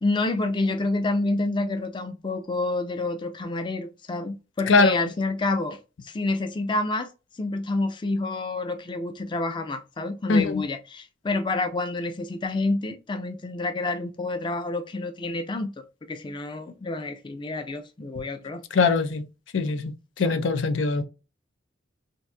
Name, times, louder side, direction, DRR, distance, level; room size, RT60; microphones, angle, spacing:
voice 1, 0.0-7.1 7.3-18.6 20.2-20.4, left 2 dB, 25° left, 0.4 m, -28 dB
voice 2, 10.3-10.6 18.7-19.2 19.5-21.0, left 4 dB, 90° left, 0.5 m, -21 dB
3.9 x 2.6 x 2.2 m
head